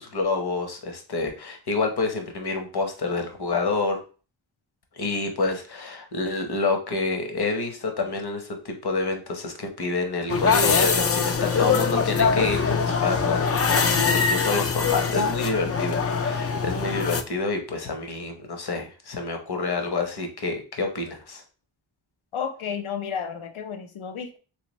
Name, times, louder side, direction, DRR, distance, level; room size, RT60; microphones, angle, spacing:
voice 1, 0.0-4.0 4.9-13.9 14.1-21.4, left 3 dB, 50° left, 4 dB, 0.9 m, -28 dB
sound 1, 10.3-17.2, left 5 dB, 35° left, 0.4 m, -23 dB
voice 2, 22.3-24.4, left 7 dB, 80° left, 7 dB, 0.7 m, -32 dB
3.3 x 3.2 x 3.1 m, 0.36 s
wide cardioid pair, 85°, 48 cm